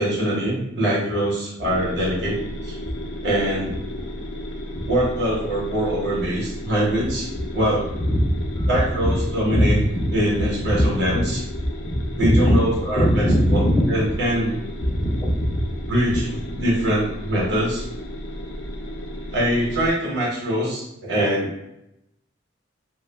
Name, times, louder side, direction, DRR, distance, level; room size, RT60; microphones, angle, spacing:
voice 1, 0.0-2.3 2.6-2.7 3.2-3.8 4.9-7.9 8.7-9.8 10.1-11.2 12.2-13.2 13.5-13.6 13.9-14.5 15.9-17.8 19.3-21.5, right 1 dB, 60° right, -5 dB, 0.9 m, -23 dB
sound 1, 1.6-19.9, left 1 dB, 75° left, 0.4 m, -34 dB
voice 2, 8.0-8.7 9.0-9.2 9.5-10.9 11.1-11.2 11.6-12.6 12.9-13.8 14.1-14.2 14.8-15.6, equal, 15° left, -1 dB, 0.4 m, -21 dB
2.3 x 2.0 x 3.3 m, 0.84 s
head